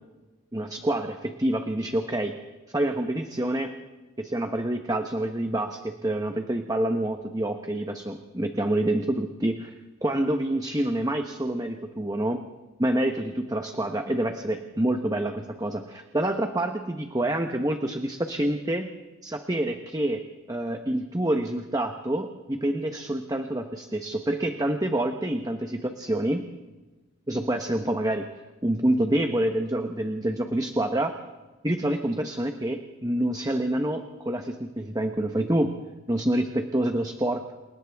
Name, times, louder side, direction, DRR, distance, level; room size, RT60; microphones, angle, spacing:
voice 1, 0.5-2.3 2.7-3.7 4.2-9.7 10.0-12.4 12.8-18.9 19.2-20.2 20.5-26.4 27.3-28.3 28.6-31.1 31.6-35.7 36.1-37.5, right 1 dB, 15° right, 5 dB, 1.0 m, -27 dB
29.5 x 28.0 x 3.6 m, 1.2 s
head